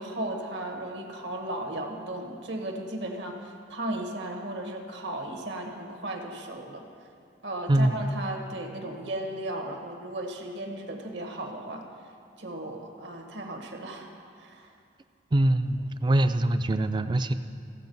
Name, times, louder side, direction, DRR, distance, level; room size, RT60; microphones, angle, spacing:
voice 1, 0.0-6.9 7.4-11.8 12.4-14.1 14.4-14.7, right 1 dB, 70° right, 3 dB, 1.3 m, -35 dB
voice 2, 15.3-17.3, right 1 dB, 25° right, 11 dB, 0.3 m, -23 dB
15.5 x 7.6 x 5.3 m, 2.4 s
head